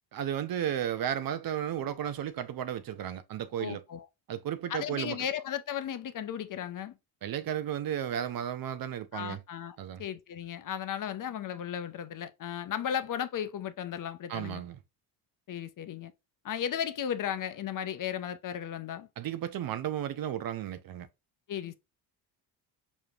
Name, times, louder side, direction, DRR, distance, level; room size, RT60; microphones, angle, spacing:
voice 1, 0.1-3.8 4.3-5.2 7.2-9.4 9.8-10.0 14.3-14.8 19.2-21.1, right 10 dB, 50° right, 0.6 m, -34 dB
voice 2, 3.6-4.0 4.7-6.9 9.1-14.6 15.5-16.1 16.4-19.1 21.5-21.7, left 9 dB, 40° left, 0.6 m, -35 dB
4.9 x 3.1 x 2.3 m
supercardioid pair, 75°, 48 cm